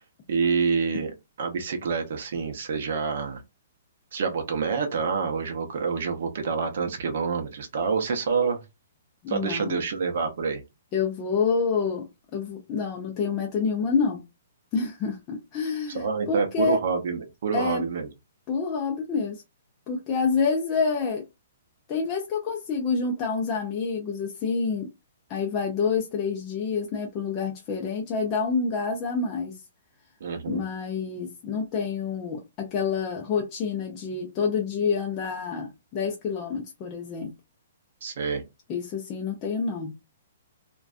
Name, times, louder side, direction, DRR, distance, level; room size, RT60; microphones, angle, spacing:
voice 1, 0.3-1.1 1.4-3.4 4.1-8.6 9.3-10.6 15.9-18.1 30.2-30.6 38.0-38.4, right 5 dB, 50° right, 0.6 m, -27 dB
voice 2, 9.2-9.8 10.9-12.1 12.3-14.2 14.7-16.8 17.5-17.8 18.5-19.4 19.9-21.2 21.9-24.9 25.3-29.6 30.5-37.3 38.7-40.0, left 5 dB, 20° left, 0.4 m, -28 dB
2.5 x 2.2 x 2.4 m
hypercardioid pair, 175°, 0 cm